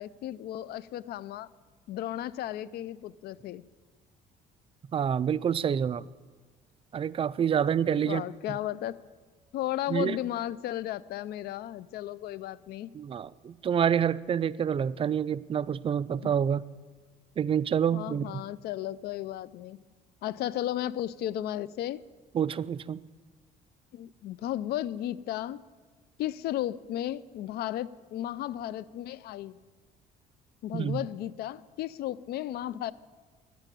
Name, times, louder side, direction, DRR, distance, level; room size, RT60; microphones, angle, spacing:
voice 1, 0.0-1.5 1.9-3.7 8.0-9.0 9.5-12.9 16.2-16.3 17.9-19.8 20.2-22.0 23.9-25.6 26.2-29.6 30.6-32.9, left 13 dB, 70° left, 0.5 m, -34 dB
voice 2, 4.9-6.0 6.9-8.6 9.9-10.2 12.9-16.7 17.4-18.4 22.3-23.0 30.7-31.0, right 8 dB, 35° right, 0.4 m, -28 dB
11.0 x 9.2 x 9.8 m
cardioid pair, 110°, 17 cm